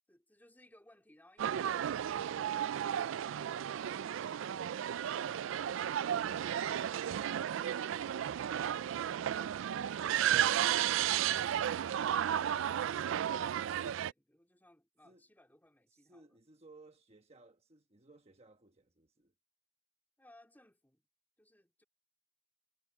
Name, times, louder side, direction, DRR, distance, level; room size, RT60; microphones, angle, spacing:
voice 1, 0.1-1.8 2.3-6.7 7.0-8.9 9.2-12.4 12.6-16.4 20.2-21.1 21.4-21.8, left 1 dB, 10° left, 3.4 m, -65 dB
sound 1, 1.4-14.1, right 10 dB, 80° right, 0.3 m, -33 dB
voice 2, 15.9-19.3, right 3 dB, 35° right, 1.2 m, -61 dB
head